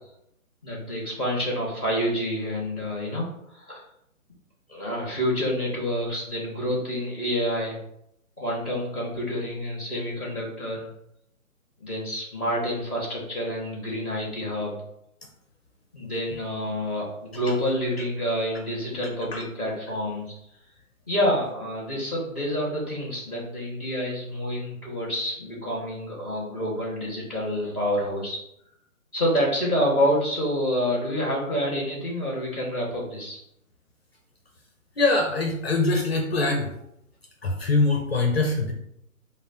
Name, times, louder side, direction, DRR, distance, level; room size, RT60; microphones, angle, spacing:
voice 1, 0.6-3.8 4.7-7.8 8.4-10.9 11.8-14.8 15.9-20.2 21.1-28.4 29.1-33.4, equal, 10° right, -13 dB, 0.5 m, -28 dB
voice 2, 35.0-36.7 37.4-38.7, left 3 dB, 45° left, 2 dB, 0.6 m, -23 dB
5.3 x 2.0 x 2.7 m, 0.76 s
figure-of-eight pair, 150°, 43 cm